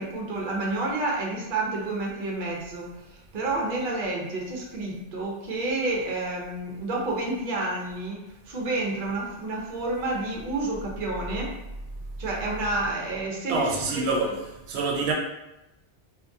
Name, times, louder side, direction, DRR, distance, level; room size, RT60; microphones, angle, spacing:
voice 1, 0.0-2.9 3.3-8.2 8.5-11.5 12.2-13.7 14.0-14.3, right 2 dB, 55° right, -2 dB, 0.8 m, -29 dB
voice 2, 13.5-15.1, right 3 dB, 90° right, 0 dB, 0.8 m, -26 dB
2.8 x 2.4 x 2.6 m, 0.92 s
omnidirectional pair, 1.1 m